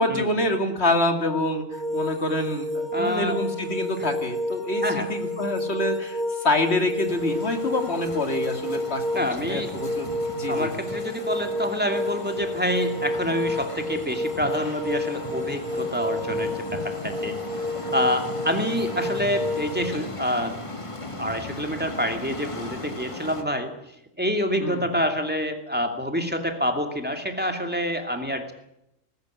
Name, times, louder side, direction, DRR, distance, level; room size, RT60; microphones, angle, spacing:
voice 1, 0.0-2.7 3.0-10.7 24.6-24.9, left 1 dB, 55° left, 6 dB, 2.8 m, -26 dB
sound 1, 1.7-19.9, left 1 dB, 35° right, 2.2 m, -30 dB
voice 2, 2.9-3.4 4.8-5.1 9.1-9.7 10.5-17.4 17.9-20.6 21.2-23.7 24.2-28.5, equal, 10° right, 5 dB, 2.5 m, -27 dB
sound 2, 7.1-23.4, left 2 dB, 25° left, 1.7 m, -38 dB
19.5 x 15.5 x 9.8 m, 0.82 s
omnidirectional pair, 1.3 m